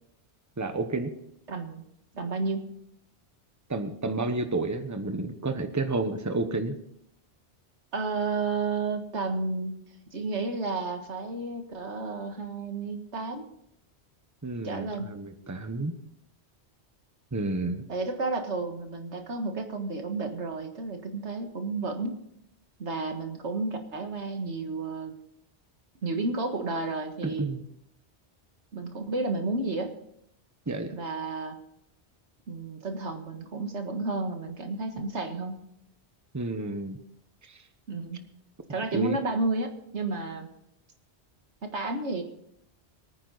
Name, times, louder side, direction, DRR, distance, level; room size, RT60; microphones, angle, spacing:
voice 1, 0.6-1.1 3.7-6.7 14.4-15.9 17.3-17.8 27.2-27.7 30.7-30.9 36.3-37.0 38.9-39.2, right 2 dB, 15° right, 8 dB, 1.0 m, -30 dB
voice 2, 1.5-1.8 2.1-2.7 7.9-9.8 10.1-13.5 14.6-15.1 17.9-22.2 22.8-25.1 26.0-27.5 28.7-29.9 30.9-31.6 32.5-35.6 37.9-38.2 38.7-40.5 41.6-42.2, right 3 dB, 85° right, 5 dB, 1.9 m, -31 dB
23.5 x 9.5 x 4.1 m, 0.75 s
omnidirectional pair, 1.1 m